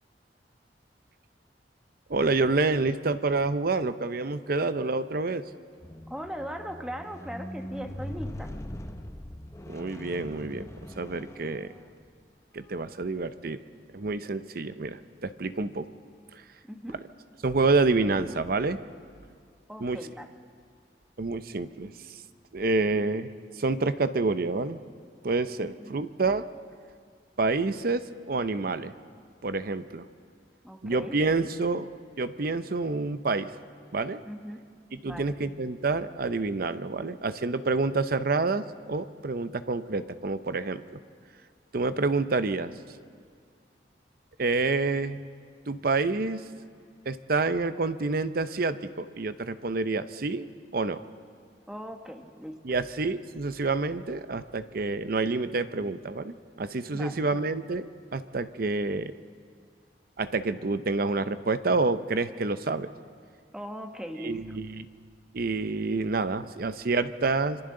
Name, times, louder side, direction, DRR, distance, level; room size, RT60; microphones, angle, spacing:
voice 1, 2.1-5.4 9.7-11.7 12.5-13.6 13.9-15.9 17.4-18.8 19.8-20.0 21.2-21.9 22.5-24.8 25.2-26.4 27.4-28.9 29.4-30.1 30.8-31.9 32.2-33.5 33.9-34.2 35.0-40.8 41.7-42.7 44.4-45.2 45.7-46.4 47.1-50.5 50.7-51.0 52.6-57.9 58.1-59.1 60.2-62.9 64.2-64.9 65.3-67.6, right 3 dB, 55° right, 12 dB, 0.7 m, -28 dB
Squeak, 5.8-12.2 12.9-13.1, left 1 dB, 15° left, 0.7 m, -41 dB
voice 2, 6.1-8.5 16.6-17.0 19.7-20.3 25.6-26.0 30.6-31.2 34.2-34.6 35.0-35.3 51.7-52.6 56.9-57.2 63.5-64.6, equal, 5° right, 5 dB, 1.1 m, -39 dB
26.0 x 25.5 x 3.8 m, 2.1 s
head